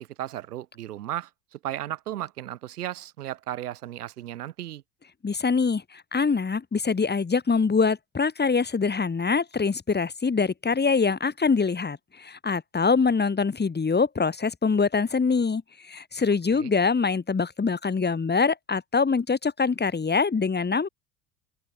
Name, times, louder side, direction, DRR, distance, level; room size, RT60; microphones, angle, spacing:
voice 1, 0.0-4.8 16.4-16.7, right 13 dB, 75° right, 5.8 m, -35 dB
voice 2, 5.2-15.6 15.9-20.9, left 5 dB, 20° left, 4.6 m, -24 dB
figure-of-eight pair, 65°, 46 cm